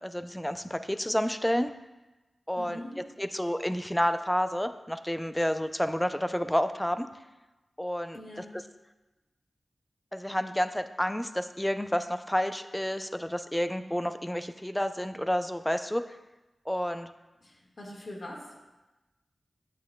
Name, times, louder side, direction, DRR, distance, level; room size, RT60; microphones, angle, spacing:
voice 1, 0.0-1.7 2.5-2.8 3.2-7.1 7.8-8.2 10.1-16.1 16.7-17.1, equal, 10° left, 10 dB, 0.4 m, -30 dB
voice 2, 2.6-2.9 8.1-8.6 17.4-18.7, left 1 dB, 60° left, -2 dB, 1.7 m, -43 dB
8.4 x 8.4 x 2.3 m, 1.1 s
wide cardioid pair, 60°, 0 cm